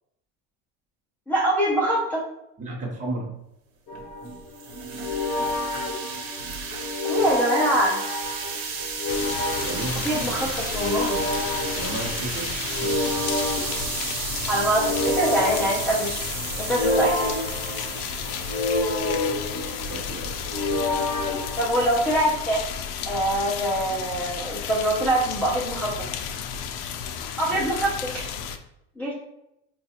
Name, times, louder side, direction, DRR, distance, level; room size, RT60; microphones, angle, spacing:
voice 1, 1.3-2.2 7.0-8.0 10.0-11.2 14.5-16.2 16.6-17.3 21.6-22.6 23.0-26.1 27.4-28.3 29.0-29.2, right 1 dB, 5° left, -6 dB, 0.4 m, -24 dB
voice 2, 2.6-3.3 9.6-10.5 11.7-12.5 12.8-13.1 19.7-20.3 27.5-27.6, right 2 dB, 25° right, -1 dB, 0.8 m, -33 dB
sound 1, 3.9-22.2, left 2 dB, 55° left, 1.0 m, -29 dB
sound 2, 3.9-22.1, right 5 dB, 70° right, 0.9 m, -34 dB
sound 3, 9.1-28.6, left 7 dB, 75° left, 0.5 m, -33 dB
4.8 x 2.3 x 2.8 m, 0.83 s
cardioid pair, 155°, 30 cm